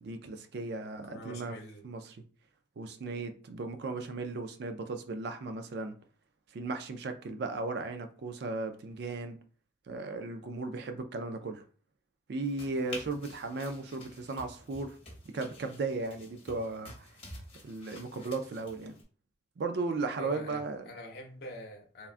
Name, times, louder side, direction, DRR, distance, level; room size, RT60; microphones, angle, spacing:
voice 1, 0.0-1.6 1.8-2.0 2.8-6.0 6.5-9.4 9.9-11.6 12.3-14.9 15.3-17.1 17.6-18.9 19.6-20.8, right 3 dB, 60° right, 0.4 m, -36 dB
voice 2, 1.0-1.8 12.8-13.1 20.2-22.1, left 1 dB, 55° left, 0.7 m, -45 dB
sound 1, 12.4-19.0, left 2 dB, 30° left, 0.9 m, -49 dB
3.5 x 2.2 x 2.5 m
head